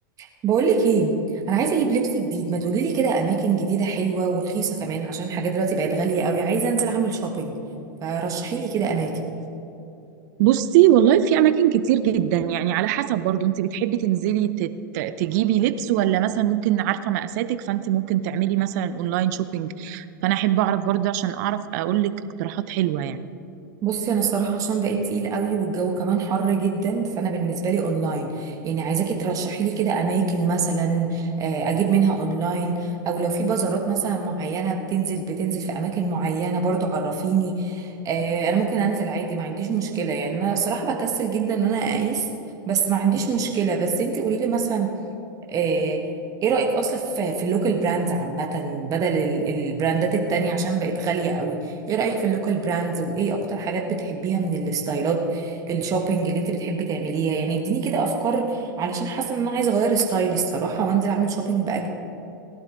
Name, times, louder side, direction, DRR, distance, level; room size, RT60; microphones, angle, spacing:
voice 1, 0.2-1.2 1.5-7.6 8.0-9.1 23.8-42.3 42.7-44.9 45.5-46.0 46.4-61.9, right 5 dB, 30° right, 1 dB, 1.4 m, -24 dB
voice 2, 10.4-22.1 22.4-23.3, right 11 dB, 55° right, 12 dB, 0.7 m, -22 dB
18.0 x 11.5 x 3.8 m, 2.8 s
hypercardioid pair, 105°, 11 cm